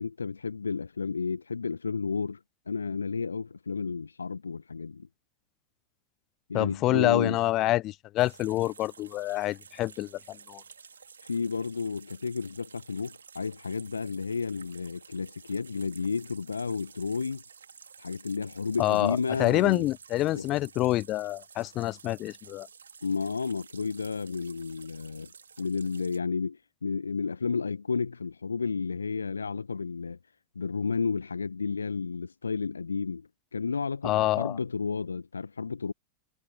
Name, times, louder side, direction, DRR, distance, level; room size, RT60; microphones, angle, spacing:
voice 1, 0.0-2.4 2.7-5.1 6.5-7.4 11.2-17.4 18.0-19.9 20.3-20.5 23.0-25.3 25.6-30.2 30.5-35.9, left 5 dB, 75° left, 1.3 m, -32 dB
voice 2, 6.5-10.6 18.8-22.7 34.0-34.6, left 16 dB, 35° left, 0.4 m, -27 dB
sound 1, 8.2-26.2, right 6 dB, 70° right, 4.3 m, -52 dB
figure-of-eight pair, 90°, 0 cm